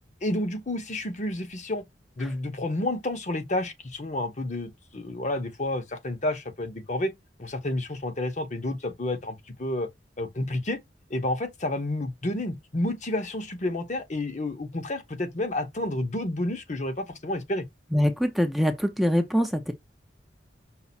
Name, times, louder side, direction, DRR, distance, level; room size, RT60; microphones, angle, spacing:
voice 1, 0.2-1.8 2.2-7.1 7.4-9.9 10.2-10.8 11.1-17.6, left 1 dB, 40° left, 0.9 m, -30 dB
voice 2, 17.9-19.7, equal, ahead, 0.5 m, -24 dB
5.7 x 2.0 x 4.1 m
head